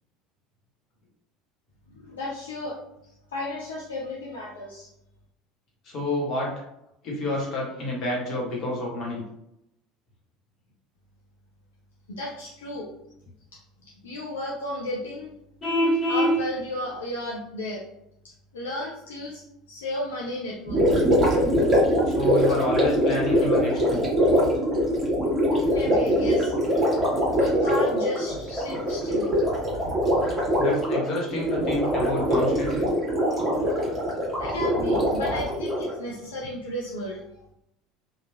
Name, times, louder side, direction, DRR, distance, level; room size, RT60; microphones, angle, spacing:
voice 1, 1.9-2.8 3.3-4.9 12.2-12.9 14.0-15.3 16.1-17.8 18.5-19.4 19.7-20.8 25.7-26.5 27.4-29.3 34.4-37.2, left 1 dB, 75° left, -4 dB, 0.5 m, -33 dB
voice 2, 5.8-6.5 7.0-9.2 22.1-24.1 30.6-32.9, left 1 dB, 45° left, -2 dB, 1.2 m, -29 dB
Vehicle horn car horn honking, 15.6-16.4, equal, 25° left, 1.0 m, -22 dB
Gurgling, 20.7-36.0, equal, 20° right, 1.3 m, -23 dB
3.0 x 2.3 x 2.3 m, 0.81 s
figure-of-eight pair, 70°, 0 cm